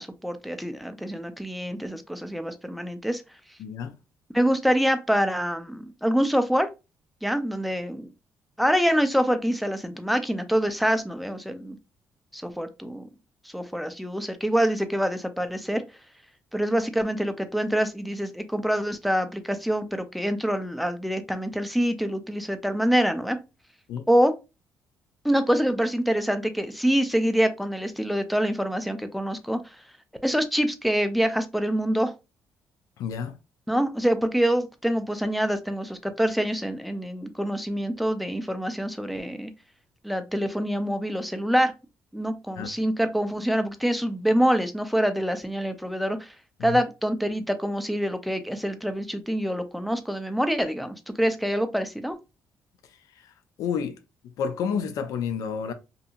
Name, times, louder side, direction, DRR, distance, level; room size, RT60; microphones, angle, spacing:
voice 1, 0.0-3.2 4.3-6.7 7.2-8.1 8.6-11.8 12.3-13.1 13.5-15.8 16.5-23.4 24.1-24.3 25.2-29.8 30.2-32.1 33.7-39.5 40.0-41.7 42.1-46.3 46.6-52.2, equal, ahead, 0.4 m, -25 dB
voice 2, 3.6-3.9 23.9-24.1 33.0-33.3 42.6-42.7 46.6-46.8 53.2-53.3 53.6-53.9 54.4-55.7, left 6 dB, 75° left, 0.4 m, -30 dB
2.8 x 2.6 x 2.4 m
cardioid pair, 100°, 6 cm